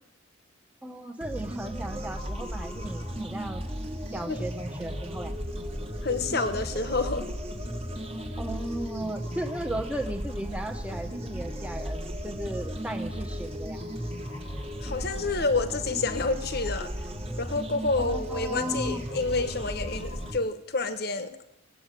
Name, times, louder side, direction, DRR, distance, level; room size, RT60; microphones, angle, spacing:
voice 1, 0.8-3.6 4.1-5.4 8.4-13.8 18.0-19.0, right 1 dB, 5° right, 5 dB, 1.0 m, -36 dB
sound 1, 1.2-20.4, equal, 30° right, 1.5 m, -35 dB
voice 2, 6.0-7.3 14.8-16.9 17.4-21.4, left 3 dB, 50° left, 10 dB, 1.1 m, -29 dB
18.5 x 8.7 x 7.5 m, 0.89 s
head